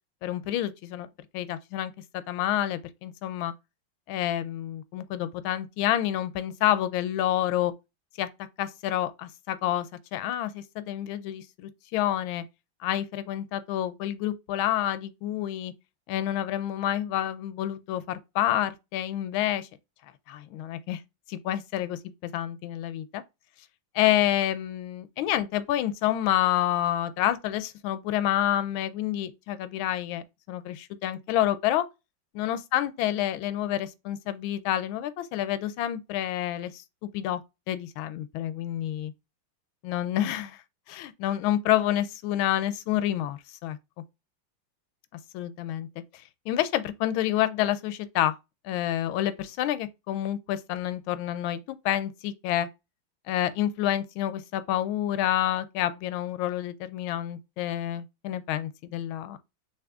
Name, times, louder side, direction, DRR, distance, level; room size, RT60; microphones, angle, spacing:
voice 1, 0.2-1.1 1.3-3.5 4.1-7.7 8.2-8.3 8.6-9.9 10.1-12.4 12.8-15.7 16.1-19.7 20.3-21.0 21.3-23.2 23.9-31.8 32.3-37.4 37.7-39.1 39.8-40.6 40.9-43.8 45.3-45.9 46.5-48.3 48.6-52.7 53.3-59.4, left 12 dB, 85° left, 1.4 m, -28 dB
5.9 x 2.9 x 2.3 m
omnidirectional pair, 2.2 m